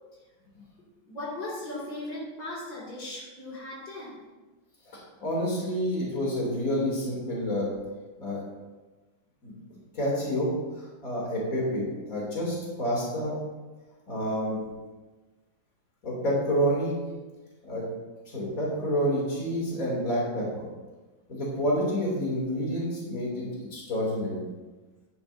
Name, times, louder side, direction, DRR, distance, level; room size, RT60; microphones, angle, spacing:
voice 1, 1.1-4.2, left 1 dB, 60° left, -7 dB, 3.1 m, -37 dB
voice 2, 4.9-7.7 8.2-8.4 9.4-9.5 9.9-10.5 10.8-13.4 14.1-14.6 16.0-17.0 17.6-17.9 18.3-20.6 21.3-24.4, equal, 45° left, -4 dB, 3.2 m, -29 dB
11.0 x 10.5 x 2.7 m, 1.2 s
omnidirectional pair, 2.2 m